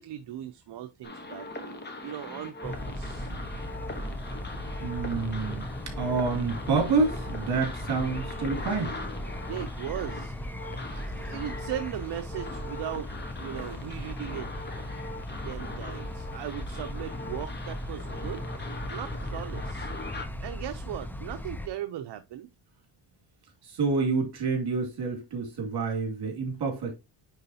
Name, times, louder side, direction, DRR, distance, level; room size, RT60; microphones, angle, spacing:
voice 1, 0.0-3.3 9.5-10.3 10.9-13.1 13.4-14.5 15.4-18.4 18.9-19.9 20.4-22.5, right 11 dB, 75° right, 0.7 m, -38 dB
sound 1, 1.0-20.3, left 2 dB, 25° left, 1.2 m, -41 dB
sound 2, 2.6-21.7, left 1 dB, 5° left, 0.4 m, -37 dB
voice 2, 4.8-8.9 13.6-13.7 23.6-26.9, right 4 dB, 60° right, 2.5 m, -28 dB
9.5 x 3.8 x 2.8 m
wide cardioid pair, 165°, 43 cm